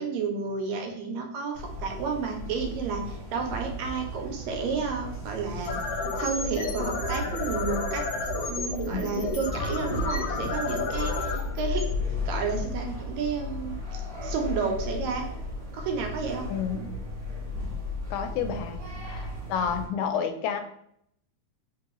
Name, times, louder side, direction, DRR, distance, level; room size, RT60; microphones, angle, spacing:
voice 1, 0.0-5.8 6.2-8.0 8.4-11.8 12.2-15.3 15.7-16.5, right 5 dB, 75° right, 3 dB, 1.8 m, -31 dB
sound 1, 1.5-19.9, left 2 dB, 45° right, 1.2 m, -35 dB
sound 2, 5.5-12.6, left 3 dB, 70° left, 1.6 m, -31 dB
voice 2, 16.4-16.9 18.1-20.6, left 7 dB, 85° left, 7 dB, 2.0 m, -30 dB
3.8 x 3.7 x 2.9 m, 0.73 s
omnidirectional pair, 3.4 m